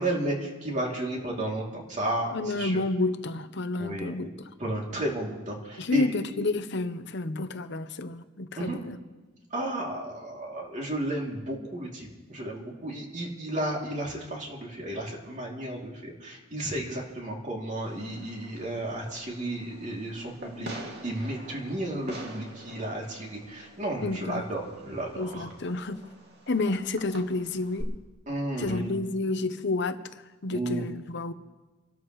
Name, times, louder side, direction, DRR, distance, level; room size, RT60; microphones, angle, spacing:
voice 1, 0.0-2.8 3.8-4.3 4.6-6.1 8.6-8.8 9.5-25.5 28.3-28.9 30.5-30.8, right 1 dB, 40° right, -1 dB, 2.9 m, -33 dB
voice 2, 2.3-4.3 5.8-9.0 24.0-24.4 25.2-26.0 26.5-28.0 28.6-31.3, left 2 dB, 60° left, 10 dB, 0.8 m, -30 dB
Fireworks, 17.8-27.8, right 1 dB, 60° right, 2.3 m, -46 dB
27.0 x 12.5 x 3.2 m, 1.2 s
head